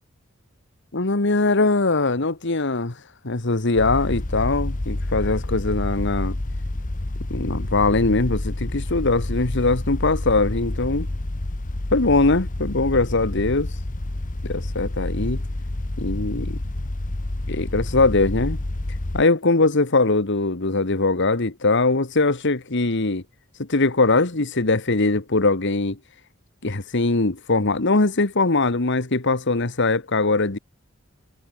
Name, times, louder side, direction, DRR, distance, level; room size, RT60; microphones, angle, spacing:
voice 1, 0.9-3.0 3.2-6.4 7.3-11.1 11.9-13.7 14.4-15.4 16.0-16.6 17.5-18.6 19.1-23.2 23.6-26.0 26.6-30.6, left 3 dB, 60° left, 1.6 m, -21 dB
sound 1, 3.8-19.2, left 1 dB, 40° left, 1.1 m, -28 dB
head